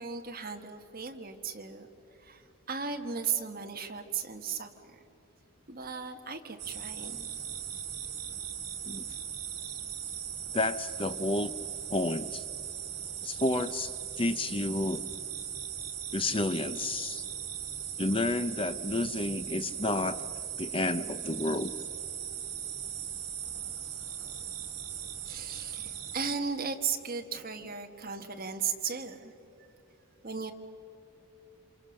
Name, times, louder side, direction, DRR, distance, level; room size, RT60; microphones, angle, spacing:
voice 1, 0.0-1.9 2.2-2.4 2.7-5.0 5.7-7.3 25.3-29.3 30.2-30.5, right 6 dB, 40° right, 4 dB, 1.5 m, -36 dB
sound 1, 6.6-26.4, right 9 dB, 80° right, 2.6 m, -39 dB
voice 2, 10.5-11.5 11.9-12.4 13.2-15.0 16.1-17.2 18.0-20.2 20.6-21.7, left 2 dB, 25° left, 11 dB, 0.6 m, -30 dB
28.0 x 26.5 x 6.4 m, 2.8 s
head